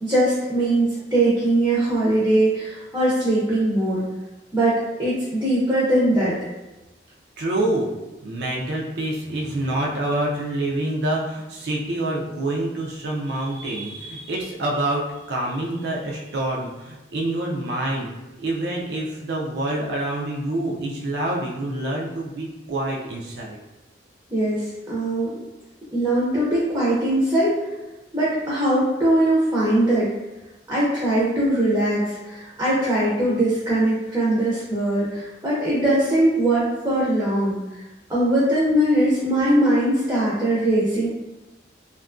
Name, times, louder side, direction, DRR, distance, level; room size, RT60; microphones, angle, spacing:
voice 1, 0.0-4.1 4.5-6.3 24.3-25.4 25.9-27.5 28.1-30.1 30.7-37.6 38.1-41.1, right 1 dB, 15° right, -8 dB, 0.5 m, -21 dB
voice 2, 7.4-7.9 8.2-18.1 18.4-23.6, right 1 dB, 65° right, -2 dB, 0.4 m, -26 dB
2.7 x 2.3 x 2.5 m, 1.0 s
head